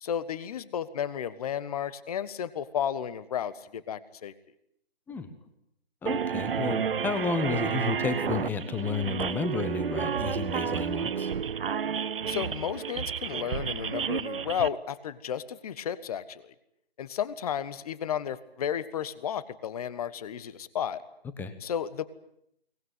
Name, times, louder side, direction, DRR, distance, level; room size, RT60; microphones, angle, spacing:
voice 1, 0.0-4.3 12.3-16.4 17.0-21.0 21.6-22.0, left 9 dB, 35° left, 16 dB, 1.4 m, -33 dB
voice 2, 6.0-11.3 21.4-21.5, left 4 dB, 5° left, 11 dB, 1.2 m, -31 dB
sound 1, 6.1-14.7, right 7 dB, 60° right, 0.9 m, -31 dB
23.0 x 20.0 x 9.4 m, 0.75 s
figure-of-eight pair, 150°, 31 cm